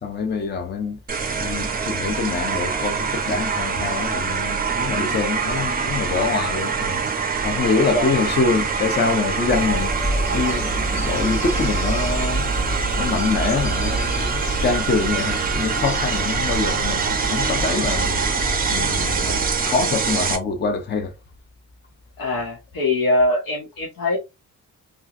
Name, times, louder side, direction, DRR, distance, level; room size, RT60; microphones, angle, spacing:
voice 1, 0.0-1.0 1.4-7.0 7.4-9.9 10.3-18.2 18.7-21.1, left 4 dB, 30° left, 0.6 m, -25 dB
sound 1, 1.1-20.4, right 5 dB, 25° right, 0.5 m, -24 dB
Bird vocalization bird call bird song, 9.5-19.5, right 1 dB, 55° left, 1.3 m, -28 dB
voice 2, 22.2-24.2, left 1 dB, 90° left, 1.1 m, -23 dB
2.9 x 2.4 x 2.4 m
wide cardioid pair, 145°, 34 cm